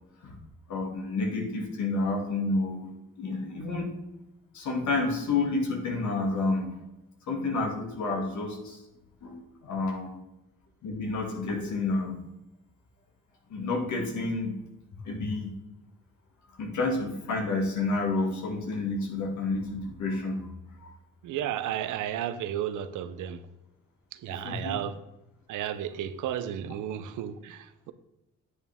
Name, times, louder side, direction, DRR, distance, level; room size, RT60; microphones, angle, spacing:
voice 1, 0.7-2.9 3.2-3.9 4.5-6.7 7.3-8.8 9.2-10.1 10.8-12.2 13.5-14.6 15.0-15.6 16.6-20.5 20.8-20.9 24.3-24.7, left 3 dB, 70° left, 1 dB, 2.2 m, -30 dB
voice 2, 21.2-23.4 24.1-25.0 25.5-27.9, right 10 dB, 85° right, 12 dB, 0.8 m, -33 dB
9.6 x 8.5 x 3.5 m, 0.94 s
cardioid pair, 90°, 30 cm